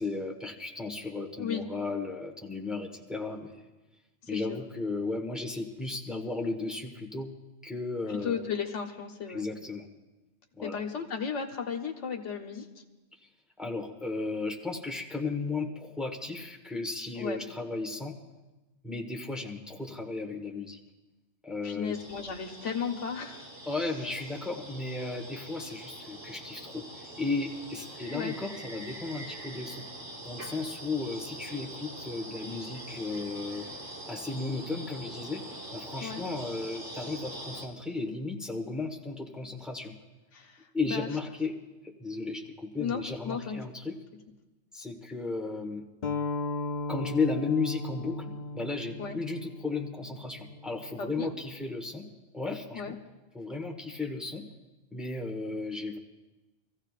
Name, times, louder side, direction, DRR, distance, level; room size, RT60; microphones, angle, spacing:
voice 1, 0.0-3.6 4.3-7.3 7.6-8.5 9.3-9.9 10.6-10.8 13.6-18.2 18.8-20.8 21.4-22.0 23.7-29.9 30.2-33.7 34.1-35.4 35.7-39.9 40.7-41.6 41.8-44.0 44.7-45.8 46.9-52.0 52.3-53.0 53.3-54.5 54.9-56.0, left 3 dB, ahead, 0 dB, 1.2 m, -34 dB
voice 2, 8.1-9.4 10.6-12.7 17.2-17.5 21.6-23.5 28.1-28.3 36.0-36.2 40.3-41.1 42.8-43.6 49.0-49.2 51.0-51.3 52.7-52.9, left 6 dB, 80° left, 4 dB, 1.4 m, -35 dB
sound 1, 21.9-37.7, right 1 dB, 80° right, 2.5 m, -44 dB
sound 2, 46.0-51.2, left 3 dB, 45° left, 0.8 m, -36 dB
25.5 x 15.0 x 2.5 m, 1.1 s
omnidirectional pair, 1.2 m